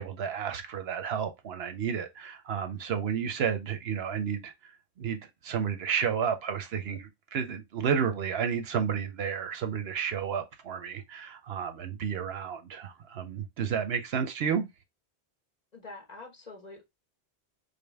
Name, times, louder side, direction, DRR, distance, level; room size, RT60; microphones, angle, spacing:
voice 1, 0.0-4.7 5.0-14.7, right 7 dB, 70° right, 0.8 m, -31 dB
voice 2, 15.7-16.8, left 3 dB, 40° left, 1.0 m, -45 dB
5.0 x 2.1 x 3.3 m
omnidirectional pair, 1.1 m